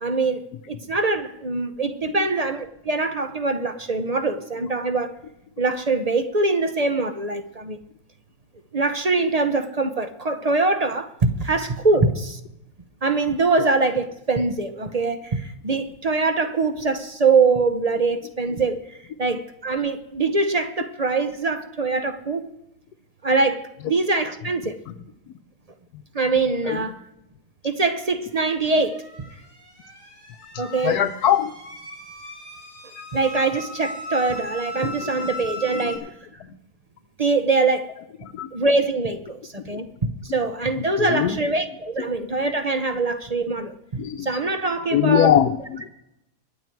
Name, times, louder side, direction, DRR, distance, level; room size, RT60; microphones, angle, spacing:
voice 1, 0.0-0.4 0.7-5.1 5.6-7.8 8.7-12.4 13.0-18.8 19.2-22.5 23.2-24.8 26.1-27.0 27.6-29.0 30.6-31.0 33.1-36.1 37.2-37.9 38.5-39.9 40.2-45.3, right 3 dB, 40° right, 0.6 m, -23 dB
sound 1, 28.4-36.0, left 1 dB, 15° right, 3.3 m, -37 dB
voice 2, 30.5-31.5 34.8-34.9 38.2-38.5 39.7-39.8 41.0-41.4 44.0-44.3 44.9-45.9, left 10 dB, 85° left, 1.2 m, -21 dB
21.5 x 7.7 x 4.6 m
omnidirectional pair, 1.7 m